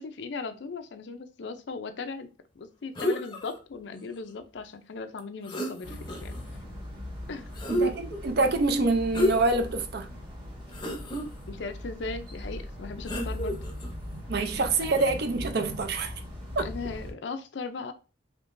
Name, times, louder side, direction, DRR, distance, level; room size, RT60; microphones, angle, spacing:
voice 1, 0.0-2.3 2.6-6.3 7.3-7.5 11.5-13.6 16.6-17.9, left 4 dB, 65° left, 0.5 m, -38 dB
sound 1, 3.0-3.6 5.2-5.3 5.5-6.4 7.5-8.2 9.1-9.6 10.1-10.2 10.7-11.2 13.1-13.9 14.9-15.1, equal, 25° left, 0.6 m, -30 dB
sound 2, 5.8-17.1, left 1 dB, 25° right, 1.1 m, -40 dB
voice 2, 7.7-10.1 14.3-16.1 16.6-16.7, right 3 dB, 55° right, 0.5 m, -26 dB
3.7 x 3.0 x 2.5 m
head